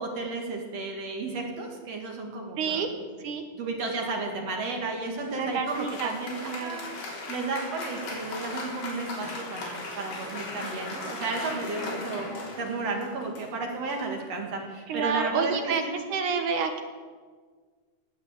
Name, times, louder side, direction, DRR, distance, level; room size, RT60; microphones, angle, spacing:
voice 1, 0.0-2.9 3.6-15.9, right 3 dB, 45° right, 2 dB, 2.7 m, -33 dB
voice 2, 2.6-2.9 3.2-3.4 5.3-6.1 6.5-6.8 14.9-15.8 16.1-16.8, right 6 dB, 65° right, 6 dB, 2.2 m, -29 dB
Applause, 5.2-15.0, left 2 dB, 65° left, 5.2 m, -38 dB
17.0 x 8.0 x 8.3 m, 1.5 s
omnidirectional pair, 4.5 m